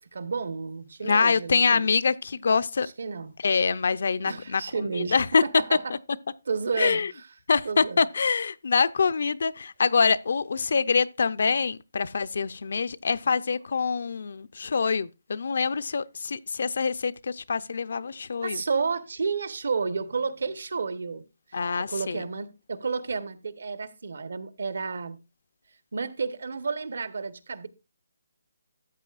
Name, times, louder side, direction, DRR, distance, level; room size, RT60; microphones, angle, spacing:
voice 1, 0.1-1.9 2.8-3.3 4.2-5.1 5.4-5.9 6.5-7.3 7.6-8.0 18.4-21.2 21.5-25.2 25.9-27.7, right 5 dB, 70° right, 1.1 m, -31 dB
voice 2, 1.0-2.9 3.4-4.6 5.1-5.4 6.8-7.1 7.5-18.6 21.5-22.2, left 5 dB, 60° left, 0.5 m, -25 dB
13.0 x 7.8 x 2.5 m
hypercardioid pair, 170°, 0 cm